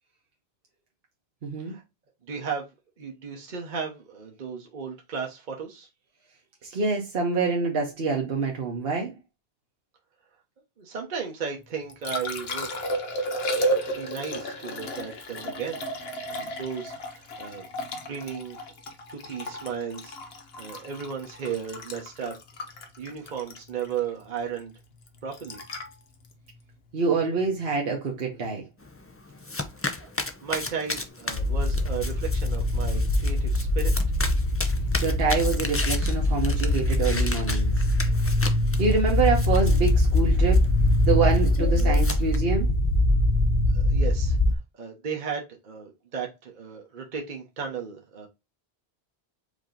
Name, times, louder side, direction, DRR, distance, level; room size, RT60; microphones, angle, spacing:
voice 1, 1.4-1.7 6.6-9.1 26.9-28.6 35.0-37.7 38.8-40.6 41.1-42.7, right 4 dB, 65° right, 1.3 m, -26 dB
voice 2, 2.2-5.9 10.8-12.7 13.9-15.9 16.3-17.7 18.0-18.6 19.1-20.1 20.6-22.3 23.0-24.7 25.2-25.6 30.0-30.1 30.4-33.9 43.7-44.4 44.7-48.3, right 6 dB, 50° right, 1.0 m, -35 dB
Liquid, 11.6-27.7 30.5-30.7, equal, 75° left, 1.2 m, -34 dB
Domestic sounds home sounds, 28.8-42.4, left 2 dB, 20° left, 0.4 m, -36 dB
sound 1, 31.3-44.6, left 1 dB, 50° left, 0.8 m, -23 dB
4.9 x 2.8 x 3.8 m
omnidirectional pair, 1.1 m